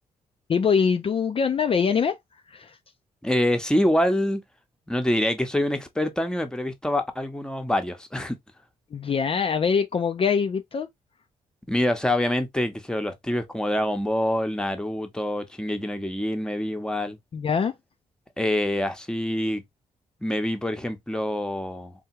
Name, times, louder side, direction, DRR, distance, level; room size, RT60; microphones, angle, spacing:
voice 1, 0.5-2.2 2.5-2.8 8.9-10.9 17.3-17.7, left 6 dB, 40° left, 0.4 m, -23 dB
voice 2, 3.2-4.4 4.9-8.4 11.7-17.2 18.4-19.6 20.2-21.9, left 1 dB, 5° left, 0.8 m, -25 dB
3.4 x 2.3 x 2.7 m
supercardioid pair, 60°, 14 cm